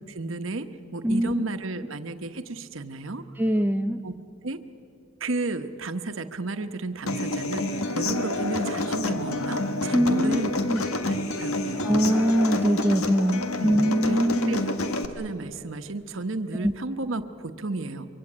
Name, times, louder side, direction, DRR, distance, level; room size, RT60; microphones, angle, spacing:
voice 1, 0.0-3.2 4.0-4.1 4.4-4.6 5.2-10.5 11.0-12.0 13.6-14.2 14.5-14.6 15.0-18.1, right 3 dB, 70° right, 9 dB, 1.1 m, -33 dB
voice 2, 1.0-1.4 3.4-4.0 9.9-10.4 10.7-10.8 11.8-14.6 16.6-16.7, equal, 10° right, 5 dB, 0.6 m, -23 dB
Human voice / Acoustic guitar, 7.1-15.0, left 2 dB, 90° left, 1.6 m, -28 dB
24.5 x 23.5 x 8.8 m, 2.6 s
head